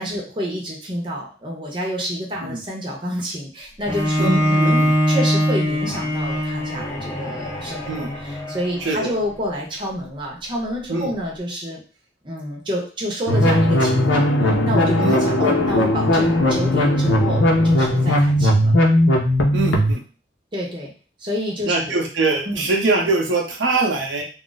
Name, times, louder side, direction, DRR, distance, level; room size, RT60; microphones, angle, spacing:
voice 1, 0.0-8.1 8.5-11.8 12.2-18.7 20.5-20.9 21.2-21.9 22.5-22.7, equal, 25° right, -2 dB, 0.7 m, -28 dB
Bowed string instrument, 3.9-9.1, equal, 15° left, 0.6 m, -22 dB
voice 2, 4.2-4.9 7.9-8.1 8.8-9.1 10.9-11.1 15.0-15.2 19.5-20.0 21.6-24.2, right 2 dB, 80° right, 0 dB, 0.7 m, -22 dB
sound 1, 13.3-19.9, left 1 dB, 90° left, 0.6 m, -17 dB
2.4 x 2.0 x 3.8 m, 0.36 s
head